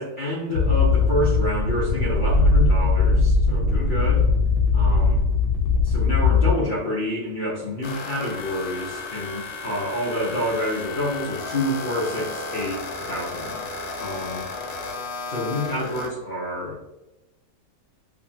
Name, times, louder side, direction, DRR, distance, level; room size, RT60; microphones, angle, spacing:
voice 1, 0.0-4.3 4.7-5.2 5.8-13.6 14.0-14.4 15.3-16.8, left 1 dB, 55° left, -5 dB, 0.6 m, -28 dB
sound 1, 0.5-6.5, left 4 dB, 90° left, 1.1 m, -19 dB
sound 2, 7.8-16.1, left 3 dB, 70° left, 1.0 m, -34 dB
2.8 x 2.7 x 2.6 m, 0.97 s
omnidirectional pair, 1.6 m